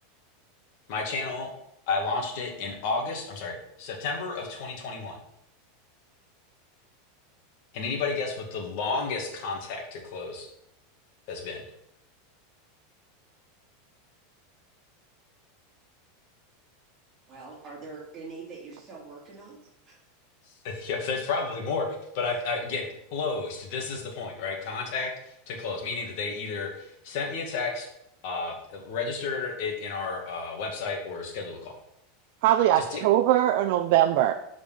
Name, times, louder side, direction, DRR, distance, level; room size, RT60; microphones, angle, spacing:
voice 1, 0.9-1.5 1.9-5.2 7.7-10.5 11.3-11.6 20.6-21.9 22.1-27.9 28.2-31.7 32.7-33.0, left 4 dB, 55° left, 2 dB, 2.1 m, -32 dB
voice 2, 17.3-19.6 19.8-20.0 22.2-22.4, right 4 dB, 20° right, -4 dB, 3.0 m, -43 dB
voice 3, 32.4-34.3, right 13 dB, 60° right, 6 dB, 0.4 m, -21 dB
7.1 x 5.0 x 5.7 m, 0.77 s
supercardioid pair, 150°, 0 cm